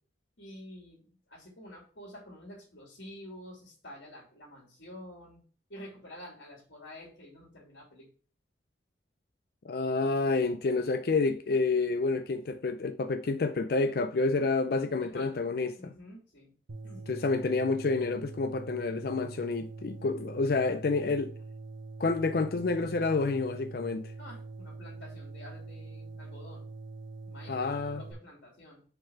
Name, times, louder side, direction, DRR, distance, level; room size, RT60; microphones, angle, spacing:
voice 1, 0.4-5.4 5.7-8.1 15.0-15.4 15.8-16.5 16.8-17.0 24.2-26.7 27.2-28.8, left 1 dB, 75° left, 2.7 m, -49 dB
voice 2, 9.6-15.8 17.1-21.3 22.0-24.1 27.5-28.0, left 3 dB, 55° left, 0.4 m, -29 dB
sound 1, 16.7-28.1, right 3 dB, 90° right, 0.9 m, -44 dB
5.2 x 4.0 x 5.7 m
head